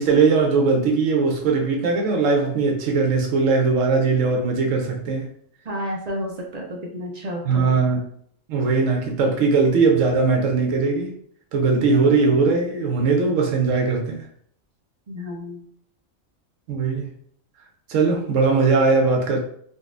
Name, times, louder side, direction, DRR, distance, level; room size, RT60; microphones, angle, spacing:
voice 1, 0.0-5.3 7.4-8.0 8.5-11.1 11.5-14.2 16.7-17.1 17.9-19.4, right 4 dB, 80° right, 1.1 m, -20 dB
voice 2, 5.7-7.7 15.1-15.6, equal, 50° right, 0.5 m, -31 dB
3.8 x 2.3 x 2.4 m
omnidirectional pair, 1.3 m